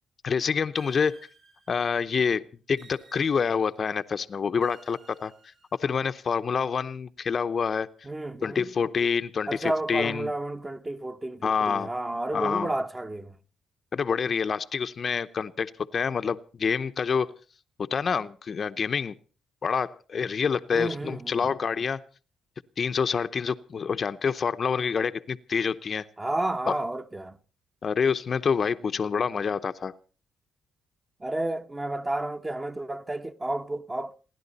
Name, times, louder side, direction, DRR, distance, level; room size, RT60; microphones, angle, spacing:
voice 1, 0.2-1.2 1.7-5.3 5.8-7.9 8.4-10.3 11.4-11.9 12.3-12.7 13.9-17.3 17.8-19.1 19.6-22.0 22.8-26.1 26.7-26.8 27.8-29.9, left 6 dB, 45° left, 0.8 m, -27 dB
sound 1, 0.8-2.1 2.8-3.9 4.6-6.1, right 4 dB, 60° right, 4.9 m, -56 dB
voice 2, 8.0-8.7 9.5-13.4 20.7-21.5 26.2-27.4 31.2-34.1, right 1 dB, 20° right, 1.1 m, -31 dB
29.0 x 11.0 x 4.1 m
cardioid pair, 90°, 0 cm